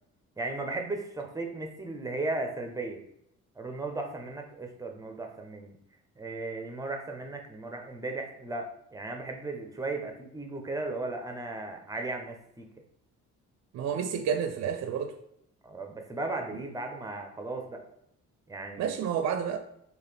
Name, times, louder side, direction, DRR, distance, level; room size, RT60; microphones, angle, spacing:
voice 1, 0.4-3.0 3.6-5.8 6.2-12.7 15.6-17.8 18.5-19.0, right 2 dB, 10° right, 3 dB, 0.7 m, -36 dB
voice 2, 13.7-15.1 18.8-19.6, right 7 dB, 60° right, 7 dB, 0.4 m, -30 dB
3.8 x 2.4 x 3.3 m, 0.75 s
cardioid pair, 90°, 30 cm